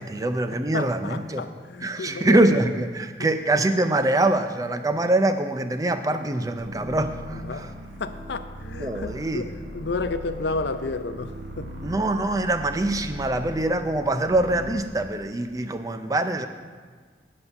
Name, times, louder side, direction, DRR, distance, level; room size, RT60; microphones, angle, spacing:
voice 1, 0.0-1.4 1.8-7.7 8.8-9.5 11.8-16.5, right 2 dB, 20° right, 9 dB, 0.4 m, -24 dB
voice 2, 0.7-2.6 3.2-3.3 7.3-7.7 8.0-12.0, left 3 dB, 70° left, 10 dB, 0.5 m, -32 dB
sound 1, 6.6-14.8, equal, 85° right, 1.4 m, -39 dB
9.4 x 5.4 x 6.8 m, 1.5 s
head